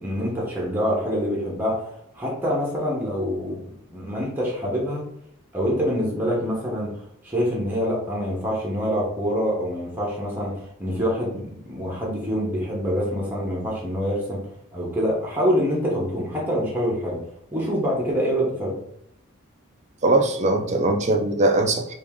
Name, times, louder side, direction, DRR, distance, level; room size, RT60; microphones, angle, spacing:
voice 1, 0.0-3.6 3.9-5.1 5.5-6.9 7.2-14.4 14.7-17.2 17.5-18.8, equal, 10° right, -4 dB, 0.8 m, -25 dB
voice 2, 20.0-21.9, right 2 dB, 35° right, 5 dB, 0.4 m, -20 dB
3.4 x 2.5 x 3.5 m, 0.76 s
head